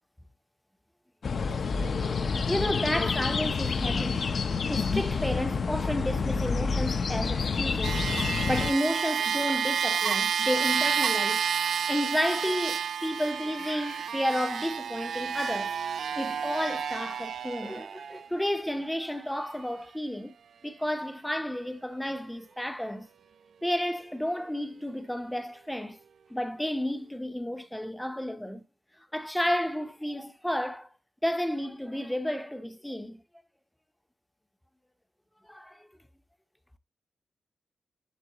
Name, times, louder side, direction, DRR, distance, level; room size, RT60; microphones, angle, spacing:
sound 1, 1.2-8.7, left 5 dB, 40° left, 0.7 m, -28 dB
voice 1, 2.5-4.4 4.7-8.0 8.5-11.4 11.9-15.8 16.2-20.3 20.6-23.1 23.6-26.0 26.3-28.6 29.1-30.9 31.2-33.2 35.5-35.9, equal, 5° left, 0.7 m, -31 dB
sound 2, 7.8-18.3 19.0-19.1, right 7 dB, 60° right, 0.5 m, -30 dB
11.5 x 3.9 x 2.9 m
wide cardioid pair, 165°, 0 cm